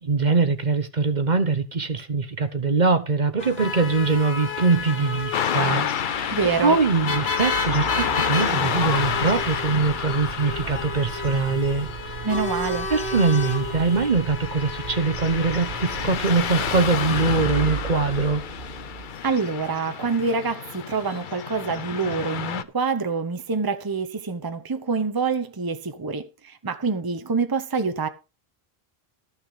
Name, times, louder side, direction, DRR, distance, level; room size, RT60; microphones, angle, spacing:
voice 1, 0.0-6.3 6.6-12.2 12.9-18.4, right 4 dB, 45° right, 1.1 m, -23 dB
sound 1, 3.4-21.2, left 4 dB, 80° left, 1.6 m, -33 dB
sound 2, 4.1-19.7, right 9 dB, 75° right, 1.1 m, -37 dB
Car passing by / Traffic noise roadway noise, 5.3-22.6, left 8 dB, 55° left, 0.8 m, -30 dB
voice 2, 6.3-6.8 12.2-12.9 19.2-28.1, right 4 dB, 25° right, 0.9 m, -26 dB
13.5 x 6.3 x 4.9 m
omnidirectional pair, 1.0 m